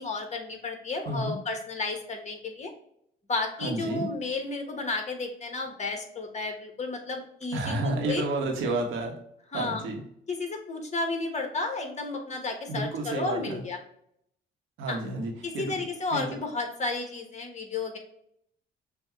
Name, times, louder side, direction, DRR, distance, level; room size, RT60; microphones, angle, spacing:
voice 1, 0.0-2.7 3.3-8.2 9.5-9.8 10.3-13.8 14.9-15.0 15.4-18.0, left 3 dB, 35° left, 3 dB, 1.3 m, -32 dB
voice 2, 1.0-1.4 3.6-4.1 7.5-9.1 9.5-10.0 12.7-13.6 14.8-15.8 16.1-16.4, right 2 dB, 85° right, 2 dB, 1.2 m, -31 dB
6.0 x 2.3 x 3.1 m, 0.72 s
cardioid pair, 90°, 20 cm